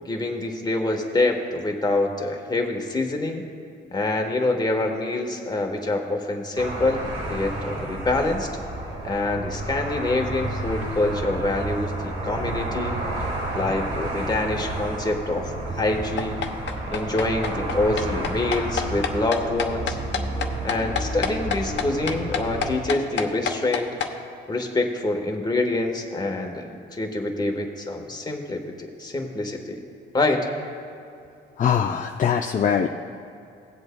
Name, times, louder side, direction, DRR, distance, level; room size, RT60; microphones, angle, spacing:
voice 1, 0.0-3.4 3.9-8.5 9.0-13.0 13.5-16.4 16.9-20.0 20.6-23.9 24.5-29.8 30.1-30.5, left 2 dB, 20° left, 2 dB, 1.2 m, -26 dB
sound 1, 6.6-22.8, right 1 dB, 85° right, 1.8 m, -31 dB
sound 2, 16.2-24.1, left 7 dB, 65° left, 0.9 m, -28 dB
voice 2, 31.6-32.9, left 8 dB, 40° left, 4 dB, 0.5 m, -22 dB
18.0 x 7.9 x 2.2 m, 2.6 s
cardioid pair, 90°, 20 cm